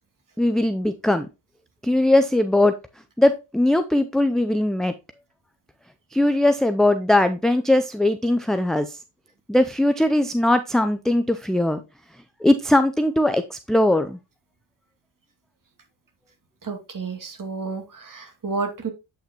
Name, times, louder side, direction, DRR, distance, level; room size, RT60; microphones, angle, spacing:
voice 1, 0.4-1.3 1.8-2.7 3.2-4.9 6.1-9.0 9.5-11.8 12.4-14.2, left 1 dB, ahead, 8 dB, 0.4 m, -20 dB
voice 2, 16.6-18.9, right 4 dB, 40° right, 5 dB, 2.4 m, -31 dB
8.4 x 5.7 x 2.9 m, 0.27 s
hypercardioid pair, 50°, 49 cm